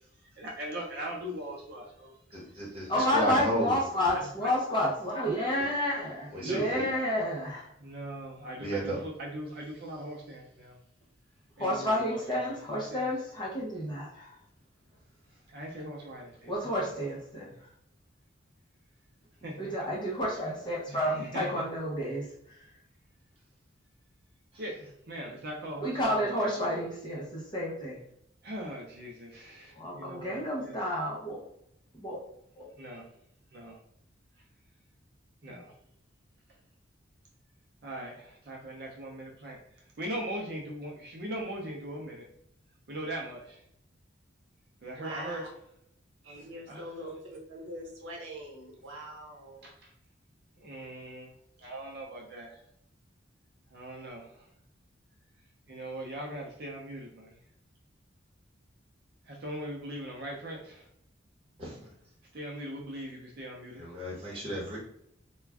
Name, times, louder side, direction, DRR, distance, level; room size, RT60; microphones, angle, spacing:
voice 1, 0.4-2.1 3.0-3.1 4.4-4.5 6.3-6.7 7.8-10.7 11.6-12.4 12.7-13.0 15.5-16.5 16.8-16.9 19.4-19.6 21.1-21.6 24.6-26.5 28.4-30.7 32.8-33.1 33.5-33.8 35.4-35.7 37.8-39.6 40.0-42.3 42.9-43.6 44.8-45.4 46.7-46.8 49.6-49.7 50.6-51.3 51.6-52.6 53.7-54.3 55.7-57.3 59.3-60.8 62.3-63.8, right 1 dB, 55° right, -1 dB, 0.5 m, -40 dB
voice 2, 2.3-3.7 6.3-6.9 8.6-9.0 61.6-61.9 63.8-64.8, right 1 dB, 30° right, -4 dB, 1.0 m, -33 dB
voice 3, 2.9-7.7 11.6-14.4 16.4-17.5 19.6-22.6 25.8-28.0 29.8-31.4 31.9-32.2 32.6-32.7, equal, 25° left, -4 dB, 0.7 m, -30 dB
voice 4, 45.0-45.5 46.2-47.2 47.5-49.7, right 1 dB, 90° right, -2 dB, 0.9 m, -42 dB
2.4 x 2.2 x 3.3 m, 0.75 s
head